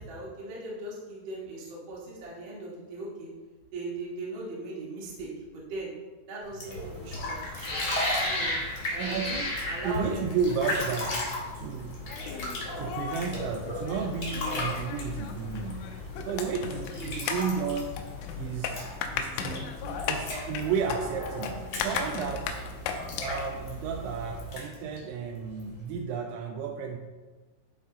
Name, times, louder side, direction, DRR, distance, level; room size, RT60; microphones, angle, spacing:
voice 1, 0.0-3.3 3.7-5.9 6.3-7.7 8.2-8.5 8.9-9.3 9.7-10.2 10.6-10.8 16.9-17.2, right 2 dB, 55° right, -6 dB, 1.3 m, -39 dB
sound 1, 6.4-26.0, left 2 dB, 60° left, 1.3 m, -38 dB
sound 2, 6.6-24.5, left 1 dB, 45° left, 0.9 m, -38 dB
voice 2, 9.0-9.6 9.8-11.3 11.5-12.0 12.8-18.0 18.4-18.8 19.1-22.6 23.2-27.0, right 6 dB, 85° right, 3 dB, 2.7 m, -33 dB
sound 3, 12.1-23.5, left 6 dB, 85° left, 3.0 m, -37 dB
11.5 x 3.9 x 4.0 m, 1.3 s
omnidirectional pair, 5.6 m